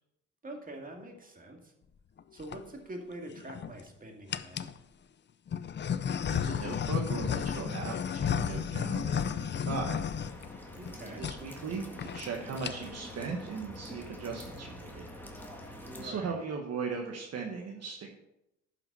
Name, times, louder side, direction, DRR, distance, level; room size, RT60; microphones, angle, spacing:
voice 1, 0.4-1.7 2.3-4.7 10.8-11.2 15.8-16.4, right 1 dB, 30° right, 2 dB, 2.2 m, -45 dB
sound 1, 2.2-2.6 3.3-3.8 4.3-4.8 5.5-10.9 11.2-11.4 11.7-11.8 12.0-12.3 12.5-13.0, left 7 dB, 35° left, 0.5 m, -33 dB
voice 2, 6.3-10.0 10.9-15.1 16.0-18.1, right 5 dB, 55° right, 0 dB, 1.4 m, -38 dB
sound 2, 10.2-16.1, left 1 dB, 5° left, 1.9 m, -46 dB
11.0 x 5.9 x 5.5 m, 0.86 s
cardioid pair, 90°, 30 cm